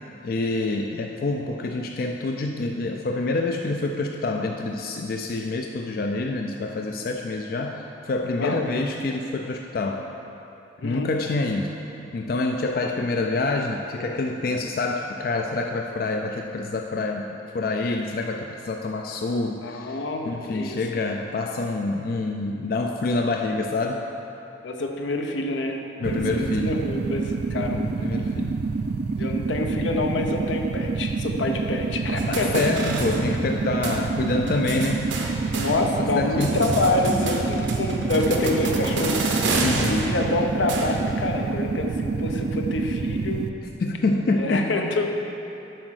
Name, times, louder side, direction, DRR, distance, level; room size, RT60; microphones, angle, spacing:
voice 1, 0.2-10.1 10.8-11.8 12.1-20.0 20.3-24.1 26.0-26.7 27.7-28.6 32.3-35.1 36.0-36.5 37.1-37.2 39.6-40.0 43.8-44.7, left 2 dB, 50° left, 3 dB, 0.3 m, -27 dB
voice 2, 19.6-20.8 24.6-27.9 29.2-32.6 33.5-33.6 35.5-43.5 44.3-45.1, left 2 dB, 85° left, 3 dB, 0.7 m, -27 dB
sound 1, 26.0-43.5, right 4 dB, 60° right, 0.3 m, -27 dB
sound 2, 32.2-33.6 33.8-34.0 34.5-36.1 36.4-41.2, right 3 dB, 80° right, 0.9 m, -29 dB
7.6 x 4.8 x 6.3 m, 2.9 s
head